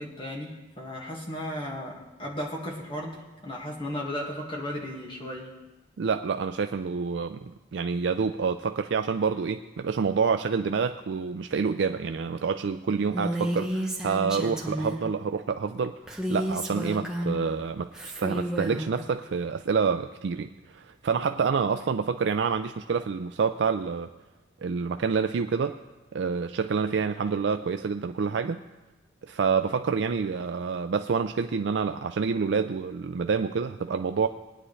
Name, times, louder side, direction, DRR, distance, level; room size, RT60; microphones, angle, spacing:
voice 1, 0.0-5.5, left 1 dB, 25° left, -1 dB, 1.8 m, -35 dB
voice 2, 6.0-15.9 16.3-24.1 24.6-25.8 26.1-28.6 29.3-34.3, right 5 dB, 70° right, 8 dB, 0.4 m, -27 dB
Female speech woman speaking, 13.1-15.1 16.1-17.5 17.9-18.9, right 1 dB, 5° right, 1.1 m, -31 dB
19.5 x 9.9 x 3.2 m, 1.1 s
head